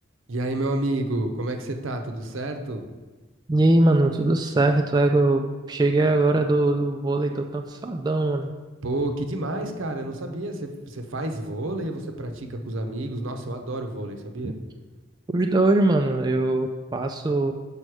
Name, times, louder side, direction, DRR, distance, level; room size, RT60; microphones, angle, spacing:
voice 1, 0.3-2.8 8.8-14.5, right 1 dB, 75° right, 5 dB, 0.8 m, -29 dB
voice 2, 3.5-5.4 5.7-8.5 14.4-14.5 15.3-17.5, right 2 dB, 20° right, 4 dB, 0.3 m, -21 dB
6.2 x 5.4 x 4.7 m, 1.3 s
head